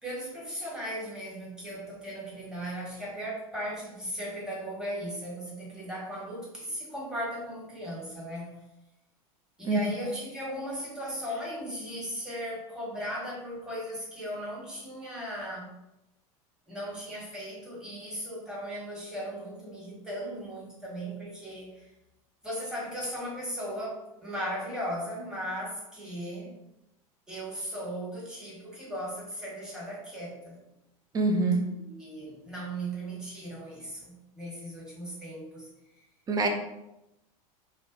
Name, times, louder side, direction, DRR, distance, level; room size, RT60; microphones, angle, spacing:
voice 1, 0.0-8.6 9.6-15.7 16.7-21.9 22.4-26.5 27.3-30.6 31.8-35.7, equal, 5° right, -6 dB, 1.2 m, -37 dB
voice 2, 31.1-31.7 36.3-36.5, right 3 dB, 20° right, 4 dB, 0.4 m, -25 dB
2.5 x 2.1 x 2.5 m, 0.91 s
hypercardioid pair, 85°, 18 cm